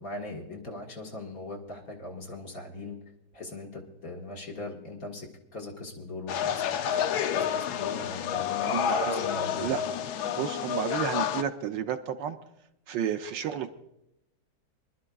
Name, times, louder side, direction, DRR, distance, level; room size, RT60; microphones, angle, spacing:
voice 1, 0.0-3.0 3.3-7.0 7.3-9.7, left 2 dB, 50° left, 0 dB, 2.0 m, -40 dB
sound 1, 6.3-11.4, left 9 dB, 70° left, 1.0 m, -29 dB
voice 2, 8.6-9.2 9.6-9.8 10.3-12.4 12.9-13.7, right 8 dB, 70° right, 7 dB, 1.3 m, -31 dB
24.5 x 12.0 x 2.3 m, 0.84 s
omnidirectional pair, 2.1 m